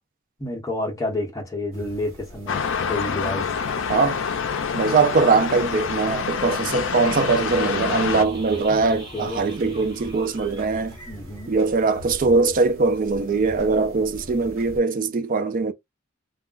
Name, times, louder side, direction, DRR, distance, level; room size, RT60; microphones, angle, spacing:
voice 1, 0.4-2.6 2.9-3.5 8.7-9.8 11.1-11.5, left 2 dB, 15° left, 0.9 m, -30 dB
sound 1, 1.7-14.8, equal, 80° right, 1.0 m, -43 dB
sound 2, 2.5-8.2, left 6 dB, 65° left, 0.5 m, -27 dB
voice 2, 4.7-10.9 11.5-15.7, right 4 dB, 40° right, 0.4 m, -21 dB
sound 3, 7.0-11.8 12.1-12.2, right 1 dB, 20° right, 1.3 m, -43 dB
2.4 x 2.2 x 3.7 m
head